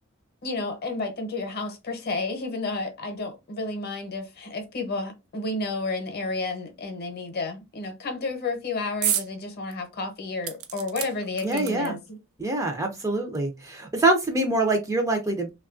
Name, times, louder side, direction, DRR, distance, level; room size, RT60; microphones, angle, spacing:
voice 1, 0.4-12.2, left 3 dB, 50° left, 0.7 m, -31 dB
sound 1, 9.0-9.3 9.7-9.8 10.4-12.1 13.0-13.1 13.4-13.5, right 10 dB, 90° right, 0.5 m, -30 dB
voice 2, 11.4-11.9 12.4-15.5, right 2 dB, 15° right, 0.4 m, -25 dB
3.0 x 2.3 x 2.4 m
head